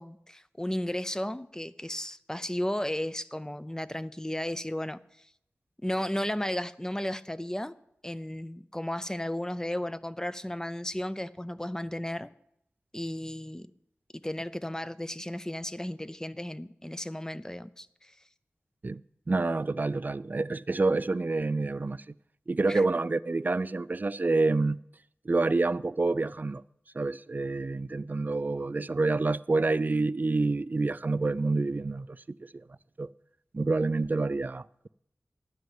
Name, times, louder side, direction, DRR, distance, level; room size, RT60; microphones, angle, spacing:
voice 1, 0.0-5.0 5.8-7.8 8.0-12.3 12.9-13.7 14.2-18.1 22.7-22.8, left 1 dB, 15° left, 0.5 m, -34 dB
voice 2, 19.3-22.0 22.5-24.8 25.3-26.6 26.9-32.1 32.5-32.6 33.0-33.1 33.5-34.9, right 3 dB, 40° right, 0.4 m, -27 dB
11.5 x 6.3 x 9.0 m
wide cardioid pair, 50°, 5 cm